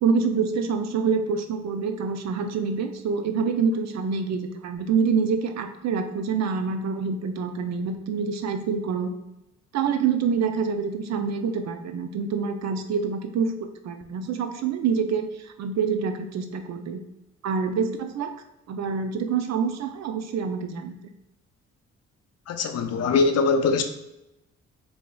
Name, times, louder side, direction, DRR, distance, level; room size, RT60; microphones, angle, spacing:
voice 1, 0.0-9.1 9.7-17.0 17.4-18.3 18.7-21.0, right 5 dB, 60° right, 7 dB, 0.5 m, -26 dB
voice 2, 22.5-23.8, left 4 dB, 55° left, 7 dB, 0.5 m, -22 dB
4.7 x 2.7 x 2.2 m, 0.90 s
cardioid pair, 90°, 30 cm